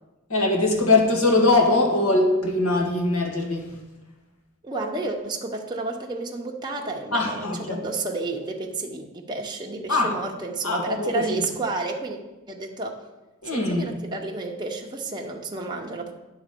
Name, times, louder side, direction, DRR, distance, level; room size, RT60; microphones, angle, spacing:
voice 1, 0.3-3.8 7.1-7.8 9.9-10.1 10.6-11.4 13.4-13.9, left 2 dB, 65° left, 1 dB, 1.8 m, -22 dB
voice 2, 4.6-12.2 12.5-13.0 13.4-16.1, right 3 dB, 20° right, 0 dB, 0.8 m, -31 dB
9.3 x 4.0 x 6.8 m, 1.0 s
head